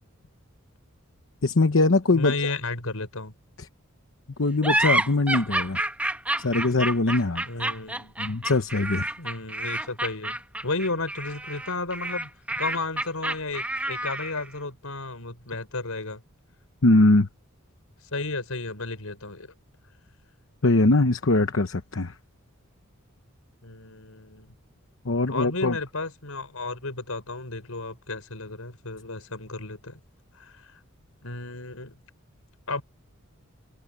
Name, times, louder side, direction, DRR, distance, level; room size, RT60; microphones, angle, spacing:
voice 1, 1.4-2.3 4.4-5.8 6.4-7.5 8.2-9.1 16.8-17.3 20.6-22.1 25.0-25.8, left 2 dB, 65° left, 1.0 m, -21 dB
voice 2, 2.1-3.3 7.4-8.1 9.2-10.4 10.6-12.3 12.6-16.2 18.1-19.5 23.6-24.5 25.3-30.0 30.3-30.8 31.2-32.0 32.7-32.8, left 3 dB, 85° left, 4.9 m, -33 dB
sound 1, 4.6-14.5, right 1 dB, 5° right, 1.3 m, -29 dB
head